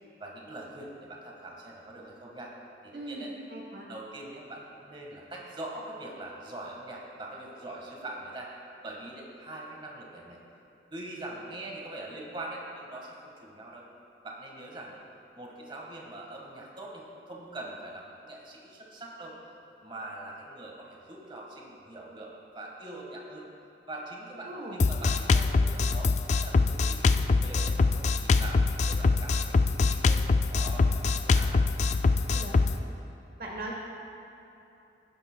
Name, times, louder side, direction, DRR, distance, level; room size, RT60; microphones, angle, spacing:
voice 1, 0.2-2.5 2.8-3.3 3.9-8.5 8.8-10.4 10.9-13.8 14.2-15.0 15.3-23.5 23.9-28.6 28.9-30.2 30.5-31.6, right 2 dB, 30° right, -2 dB, 1.5 m, -43 dB
voice 2, 2.9-3.9 24.4-24.8 32.3-32.6 33.4-33.8, right 1 dB, 55° right, -1 dB, 1.1 m, -39 dB
Drum kit, 24.8-32.7, left 3 dB, 40° left, 0.3 m, -24 dB
15.5 x 10.5 x 2.2 m, 2.9 s
head